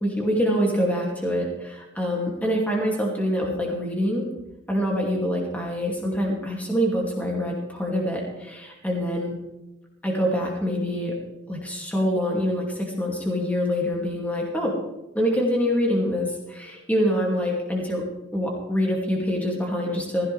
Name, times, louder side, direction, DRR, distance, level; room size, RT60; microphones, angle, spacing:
voice 1, 0.0-4.3 4.7-9.4 10.0-11.2 11.5-14.8 15.1-18.1 18.3-20.3, equal, 10° left, -1 dB, 2.5 m, -25 dB
16.5 x 15.5 x 3.4 m, 0.99 s
head